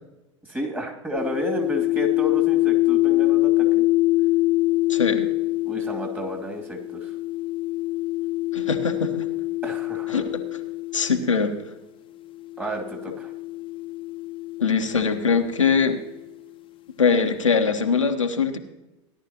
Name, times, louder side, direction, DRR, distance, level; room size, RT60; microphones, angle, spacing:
voice 1, 0.4-3.9 5.6-7.1 9.6-10.2 12.6-13.3, equal, 10° right, 0 dB, 2.5 m, -31 dB
sound 1, 1.2-11.5 12.4-16.2, left 19 dB, 30° left, 0.9 m, -25 dB
voice 2, 4.9-5.3 8.5-9.3 10.1-10.4 10.9-11.5 14.6-16.0 17.0-18.6, left 5 dB, 85° left, 5 dB, 1.0 m, -22 dB
17.0 x 11.0 x 2.9 m, 1.0 s
figure-of-eight pair, 85°, 16 cm